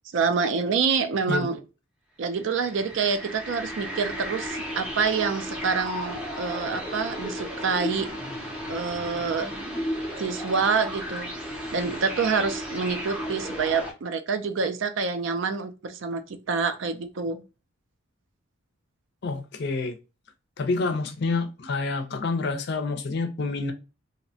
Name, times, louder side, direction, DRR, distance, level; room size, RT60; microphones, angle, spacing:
voice 1, 0.1-1.6 2.2-8.1 8.7-9.5 10.2-11.3 11.7-17.4, right 5 dB, 60° right, 0.4 m, -27 dB
sound 1, 2.3-13.9, equal, 5° right, 0.5 m, -34 dB
voice 2, 19.2-20.0 20.6-23.7, left 3 dB, 50° left, 0.4 m, -28 dB
2.8 x 2.1 x 2.6 m
head